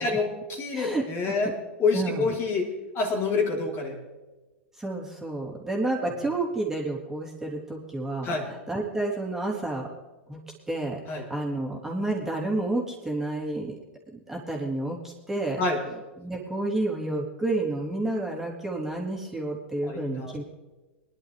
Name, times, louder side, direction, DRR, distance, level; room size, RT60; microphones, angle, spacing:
voice 1, 0.0-1.5 1.8-4.0 8.2-8.5 11.1-11.2 15.6-15.8 19.8-20.3, left 4 dB, 35° left, 0 dB, 3.5 m, -27 dB
voice 2, 0.7-1.5 1.9-2.3 4.8-9.9 10.3-10.4 10.7-13.8 14.1-15.6 16.2-20.4, right 2 dB, 5° right, -3 dB, 3.5 m, -30 dB
22.5 x 11.5 x 3.4 m, 1.2 s
hypercardioid pair, 100°, 7 cm